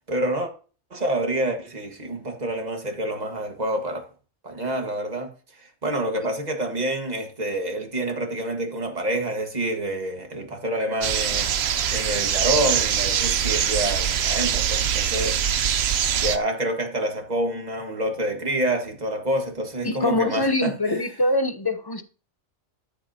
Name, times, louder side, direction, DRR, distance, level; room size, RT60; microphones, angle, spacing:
voice 1, 0.1-0.5 0.9-4.1 4.4-5.3 5.6-15.4 16.2-21.0, right 1 dB, 35° right, 1.8 m, -27 dB
sound 1, 11.0-16.4, right 8 dB, 60° right, 0.9 m, -23 dB
voice 2, 19.8-22.0, left 1 dB, 25° left, 0.7 m, -24 dB
13.5 x 8.0 x 2.9 m
omnidirectional pair, 1.3 m